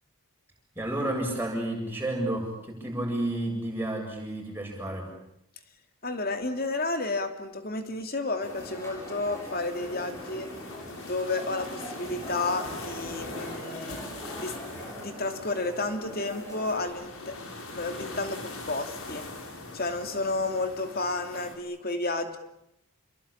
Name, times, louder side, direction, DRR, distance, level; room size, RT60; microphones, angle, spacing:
voice 1, 0.8-5.1, right 1 dB, 10° right, 0 dB, 7.7 m, -31 dB
voice 2, 6.0-10.5 11.0-14.1 14.4-14.6 15.0-17.4 17.7-19.3 19.7-22.4, left 2 dB, 45° left, 6 dB, 2.9 m, -31 dB
sound 1, 8.4-21.6, left 2 dB, 80° left, 6.4 m, -42 dB
sound 2, 8.4-16.9, equal, 15° left, 7.6 m, -43 dB
29.0 x 22.5 x 8.9 m, 0.80 s
head